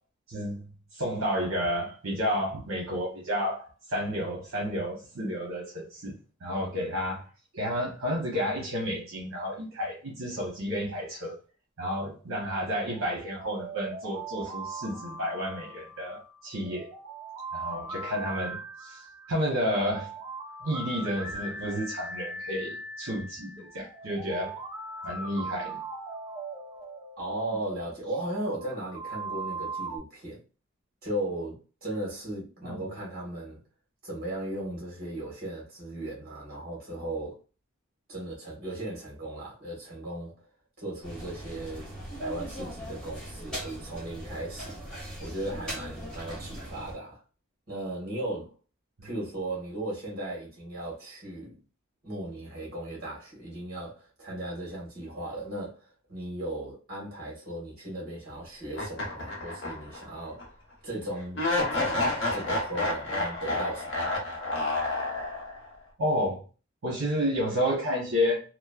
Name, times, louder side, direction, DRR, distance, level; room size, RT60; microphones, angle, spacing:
voice 1, 0.3-0.6 0.9-6.1 6.4-7.3 7.5-11.3 11.8-16.9 17.5-20.1 20.6-24.5 25.0-25.8 27.5-27.6 32.6-32.8 49.0-49.1 66.0-66.4 66.8-68.4, equal, 70° right, 0.9 m, -31 dB
sound 1, 12.8-30.0, right 3 dB, 20° right, 0.7 m, -40 dB
voice 2, 27.2-30.4 31.0-33.6 34.0-37.4 38.1-40.3 40.8-41.9 42.2-44.7 45.2-47.2 47.7-48.5 49.0-51.6 52.0-60.4 60.8-61.4 61.7-64.0, right 1 dB, 45° right, 1.4 m, -36 dB
sound 2, 41.0-46.9, right 1 dB, 5° left, 1.0 m, -39 dB
sound 3, 58.7-60.0 60.4-60.5 61.3-65.6, left 2 dB, 55° left, 0.9 m, -29 dB
3.0 x 2.1 x 2.3 m
head